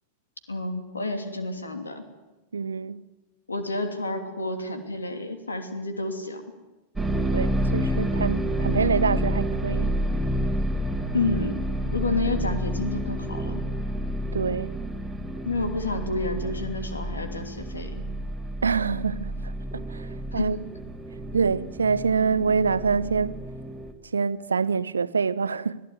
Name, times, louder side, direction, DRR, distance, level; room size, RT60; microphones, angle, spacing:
voice 1, 0.5-2.0 3.5-6.4 11.1-11.6 11.9-13.6 15.4-18.0 20.3-20.5, left 2 dB, 75° left, 2.9 m, -30 dB
voice 2, 2.5-3.0 7.3-9.9 14.3-14.7 18.6-19.3 19.7-20.1 20.3-20.6 21.3-23.3 24.1-25.8, right 5 dB, 75° right, 0.7 m, -25 dB
sound 1, 6.9-23.9, right 1 dB, 5° right, 2.5 m, -29 dB
25.0 x 16.0 x 9.5 m
figure-of-eight pair, 90°, 0 cm